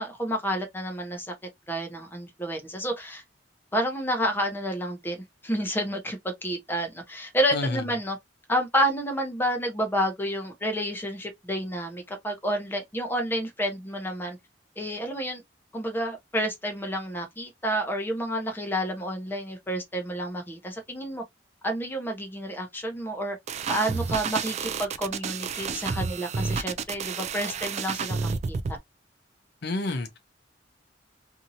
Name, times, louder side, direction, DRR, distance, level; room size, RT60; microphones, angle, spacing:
voice 1, 0.0-1.3 1.7-3.2 3.7-5.2 5.4-8.2 8.5-14.4 14.8-15.4 15.7-21.2 21.6-23.4 23.7-28.8, equal, 10° left, 0.8 m, -29 dB
voice 2, 7.5-7.8 29.6-30.2, left 2 dB, 65° left, 0.6 m, -29 dB
sound 1, 23.5-28.8, right 5 dB, 40° right, 0.3 m, -30 dB
2.7 x 2.7 x 2.6 m
head